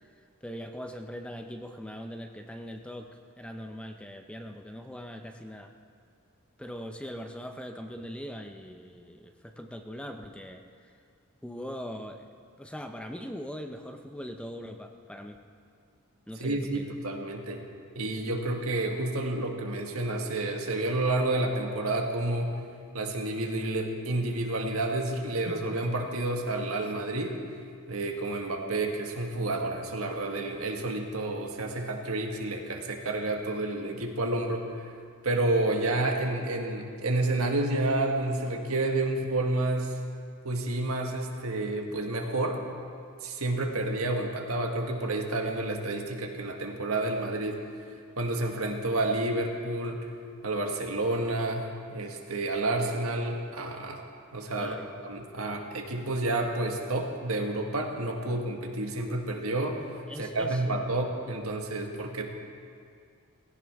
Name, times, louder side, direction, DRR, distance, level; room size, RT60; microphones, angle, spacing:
voice 1, 0.0-5.7 6.6-10.9 11.4-12.3 12.6-15.4 16.3-16.9 54.6-54.9 60.1-60.7, equal, 5° left, 5 dB, 0.6 m, -41 dB
voice 2, 16.4-17.6 17.9-22.6 22.9-27.4 27.9-34.9 35.2-40.0 40.4-42.6 43.2-47.6 48.2-50.1 50.4-54.1 54.3-54.8 55.0-59.9 60.2-62.3, right 2 dB, 80° right, 2 dB, 1.6 m, -30 dB
19.0 x 16.5 x 3.5 m, 2.2 s
head